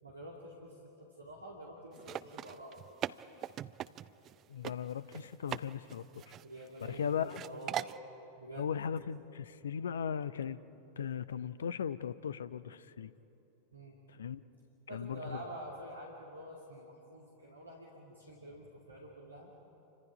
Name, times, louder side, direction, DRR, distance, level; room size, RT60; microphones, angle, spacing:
voice 1, 0.0-2.8 6.4-8.1 8.4-8.7 13.7-14.0 14.9-19.5, right 1 dB, 80° right, -3 dB, 2.7 m, -48 dB
sound 1, 2.0-4.3 4.6-4.7 5.1-5.6 5.9-6.9 7.3-8.0, right 11 dB, 30° right, 0.5 m, -40 dB
voice 2, 4.5-6.2 6.8-7.4 8.6-10.6 11.0-13.1 14.1-14.4 14.9-15.4, left 8 dB, 65° left, 16 dB, 0.6 m, -37 dB
28.5 x 25.0 x 5.1 m, 2.9 s
figure-of-eight pair, 90°, 0 cm